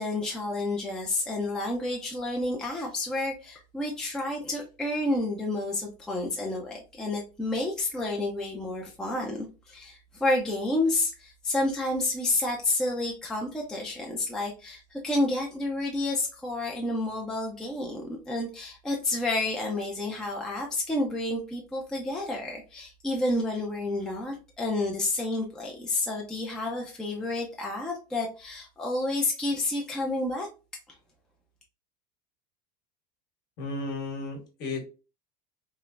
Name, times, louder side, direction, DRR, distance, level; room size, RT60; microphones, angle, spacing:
voice 1, 0.0-30.5, left 2 dB, 5° left, -1 dB, 0.5 m, -30 dB
voice 2, 33.6-34.8, left 2 dB, 50° left, 2 dB, 1.1 m, -34 dB
3.2 x 2.0 x 2.3 m, 0.32 s
supercardioid pair, 135°, 21 cm